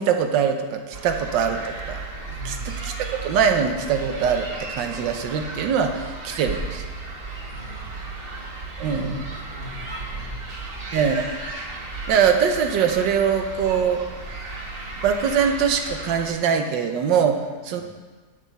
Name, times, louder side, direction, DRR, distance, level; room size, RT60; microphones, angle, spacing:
voice 1, 0.0-2.0 2.4-2.9 3.2-6.8 8.8-9.2 10.9-11.3 12.1-14.0 15.0-17.8, right 7 dB, 90° right, 6 dB, 1.5 m, -22 dB
sound 1, 0.9-16.3, right 3 dB, 35° right, 1.1 m, -34 dB
voice 2, 2.3-2.8 7.5-8.2 9.0-10.4 17.7-17.8, left 2 dB, 60° left, -8 dB, 3.8 m, -40 dB
10.5 x 7.7 x 4.0 m, 1.4 s
omnidirectional pair, 1.9 m